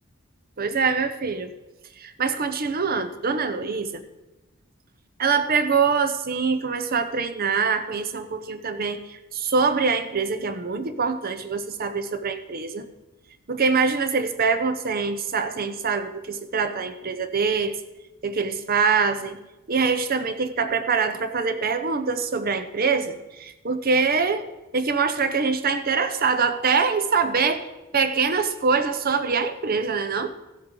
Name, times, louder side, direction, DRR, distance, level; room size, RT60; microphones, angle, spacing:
voice 1, 0.6-1.5 2.0-4.0 5.2-12.9 13.5-17.8 18.2-19.4 19.7-24.5 24.7-27.7 27.9-30.3, right 5 dB, 45° right, 10 dB, 0.8 m, -24 dB
16.0 x 7.7 x 3.8 m, 1.0 s
head